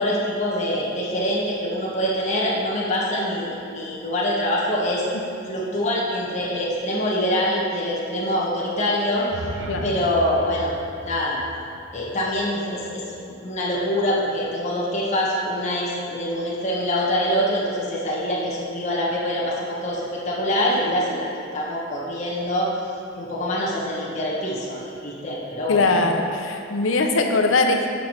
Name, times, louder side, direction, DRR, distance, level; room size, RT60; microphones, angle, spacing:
voice 1, 0.0-5.1 5.5-9.3 9.8-10.7 11.0-11.4 11.9-13.0 13.4-22.8 23.2-25.8, equal, 35° left, -5 dB, 1.1 m, -24 dB
sound 1, 9.1-13.2, right 1 dB, 80° right, 0.7 m, -38 dB
voice 2, 25.7-27.9, left 3 dB, 75° left, 4 dB, 0.7 m, -21 dB
7.0 x 4.6 x 5.5 m, 2.6 s
head